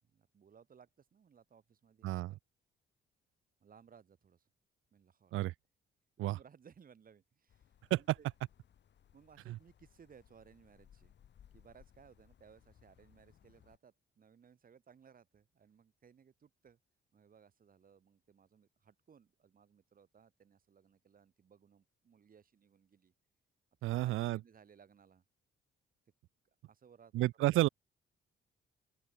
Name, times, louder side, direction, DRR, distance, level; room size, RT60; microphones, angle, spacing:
voice 1, 0.0-2.4 3.6-4.5 4.9-5.3 6.2-8.3 9.1-11.1 11.5-16.8 17.1-23.1 24.0-25.2 26.7-27.6, right 7 dB, 45° right, 2.8 m, -62 dB
voice 2, 2.0-2.3 5.3-5.5 6.2-6.4 7.9-8.0 9.5-9.6 23.8-24.4 27.1-27.7, right 16 dB, 80° right, 0.7 m, -31 dB
sound 1, 7.5-13.8, left 9 dB, 65° left, 7.9 m, -65 dB
open air
cardioid pair, 90°, 20 cm